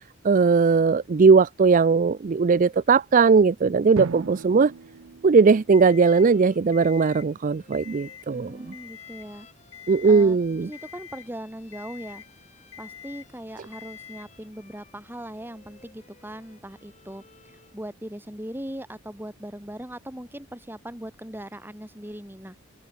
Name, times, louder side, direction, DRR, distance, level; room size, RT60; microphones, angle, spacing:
voice 1, 0.2-4.7 5.2-8.6 9.9-10.7, right 5 dB, 40° right, 0.4 m, -19 dB
Drum, 4.0-6.5, right 4 dB, 80° right, 0.6 m, -37 dB
Alarm, 5.7-6.3 6.7-7.3 7.7-8.3 8.7-9.3 9.7-10.3 10.7-11.3 11.7-12.3 12.7-13.3 13.7-14.3, left 9 dB, 65° left, 1.9 m, -45 dB
Bowed string instrument, 5.7-17.8, left 4 dB, 35° left, 6.7 m, -58 dB
voice 2, 8.3-9.5 10.0-12.2 12.8-22.6, equal, 10° right, 5.5 m, -39 dB
open air
head